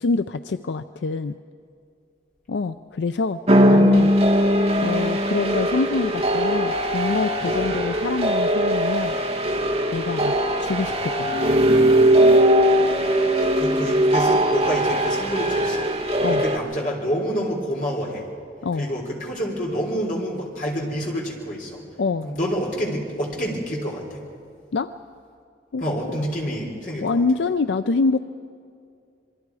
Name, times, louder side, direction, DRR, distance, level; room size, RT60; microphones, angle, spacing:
voice 1, 0.0-1.4 2.5-3.4 3.7-4.1 4.8-9.1 9.9-11.6 16.2-16.4 18.6-18.9 22.0-22.3 24.7-24.9 25.7-25.8 27.0-28.2, left 4 dB, 80° left, 10 dB, 0.4 m, -25 dB
sound 1, 3.5-16.6, right 1 dB, 35° right, 1.5 m, -20 dB
voice 2, 13.4-15.9 16.3-18.3 18.8-21.8 22.2-24.2 25.8-27.2, equal, 45° left, -1 dB, 3.8 m, -28 dB
26.5 x 23.0 x 4.8 m, 2.4 s
head